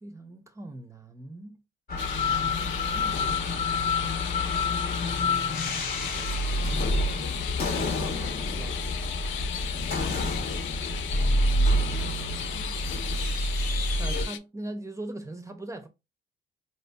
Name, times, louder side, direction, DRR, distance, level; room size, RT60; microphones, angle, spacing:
voice 1, 0.0-1.6 2.2-3.2 5.0-6.5 7.8-8.9 11.1-12.8 14.0-15.9, right 1 dB, 15° right, 0.5 m, -42 dB
sound 1, 1.9-14.2, left 2 dB, 50° left, 0.9 m, -28 dB
sound 2, 2.0-14.4, left 10 dB, 75° left, 0.4 m, -36 dB
4.3 x 2.6 x 2.2 m
cardioid pair, 90°, 20 cm